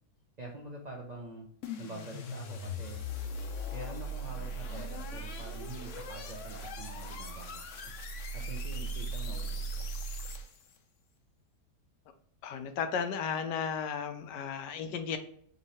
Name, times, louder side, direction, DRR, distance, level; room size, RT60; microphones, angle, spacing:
voice 1, 0.4-1.5 1.8-3.0 3.7-7.9 8.3-10.1, right 2 dB, 65° right, 0 dB, 0.4 m, -45 dB
sound 1, 1.6-10.7, equal, 65° left, 0.8 m, -39 dB
voice 2, 12.4-15.2, left 6 dB, 90° left, 8 dB, 1.3 m, -34 dB
5.4 x 2.8 x 3.1 m, 0.63 s
omnidirectional pair, 1.8 m